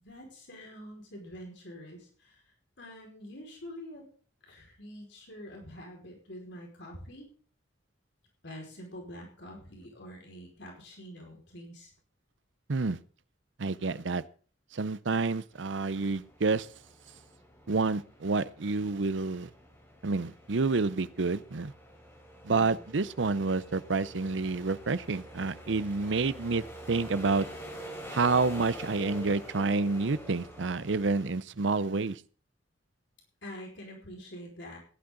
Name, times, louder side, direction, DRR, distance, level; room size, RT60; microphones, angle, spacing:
voice 1, 0.0-2.4 2.8-4.0 4.5-7.3 8.4-11.9 33.4-34.8, equal, 70° left, 5.1 m, -46 dB
voice 2, 13.6-14.2 14.7-16.7 17.7-19.5 20.0-21.7 22.4-27.5 28.1-32.2, right 3 dB, 80° right, 0.7 m, -29 dB
sound 1, 15.5-31.3, equal, 15° left, 4.9 m, -47 dB
16.0 x 11.5 x 3.9 m
head